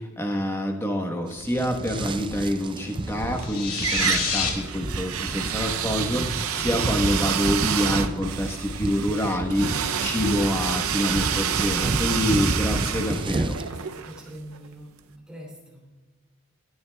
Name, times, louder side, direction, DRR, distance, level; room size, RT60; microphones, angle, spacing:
voice 1, 0.0-13.6, equal, 10° left, 3 dB, 1.1 m, -27 dB
sound 1, 1.3-13.7, right 2 dB, 20° right, 0.4 m, -31 dB
sound 2, 2.9-3.5 3.8-14.7, right 9 dB, 75° right, 0.6 m, -29 dB
sound 3, 3.4-4.5, left 6 dB, 90° left, 2.1 m, -27 dB
voice 2, 13.7-15.8, right 1 dB, 5° right, -3 dB, 2.9 m, -44 dB
23.0 x 9.4 x 2.3 m, 1.3 s
head